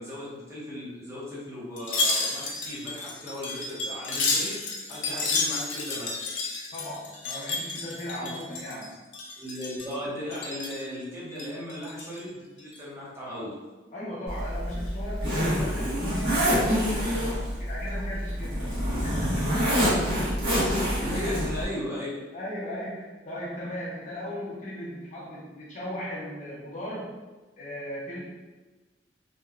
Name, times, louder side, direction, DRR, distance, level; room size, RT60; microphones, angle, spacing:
voice 1, 0.0-4.6 4.9-6.1 8.2-8.3 9.4-13.5 20.9-22.1, left 1 dB, 15° right, -8 dB, 0.7 m, -36 dB
Wind chime, 1.8-8.9 9.1-9.9 10.3-10.8 11.3-12.2 12.6-12.8, left 3 dB, 85° left, 0.5 m, -31 dB
voice 2, 6.7-9.0 13.9-18.7 19.0-19.9 21.0-21.1 22.3-27.1 27.6-28.3, equal, 40° left, -6 dB, 0.6 m, -37 dB
Zipper (clothing), 14.3-21.6, equal, 65° right, 1.0 m, -26 dB
2.8 x 2.1 x 2.3 m, 1.2 s
head